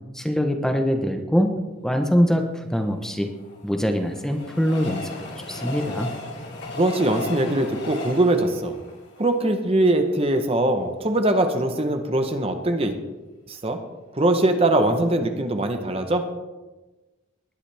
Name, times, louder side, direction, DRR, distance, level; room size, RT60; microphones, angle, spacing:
voice 1, 0.1-1.5 1.8-3.3 3.6-5.1 5.5-6.1, equal, ahead, 4 dB, 0.9 m, -23 dB
Train, 2.9-10.2 10.7-10.8 11.0-11.1, left 2 dB, 55° left, 2.5 m, -36 dB
voice 2, 6.8-8.8 9.2-12.9 13.5-13.8 14.1-16.2, right 1 dB, 30° right, 6 dB, 0.9 m, -22 dB
20.0 x 10.5 x 3.4 m, 1.2 s
head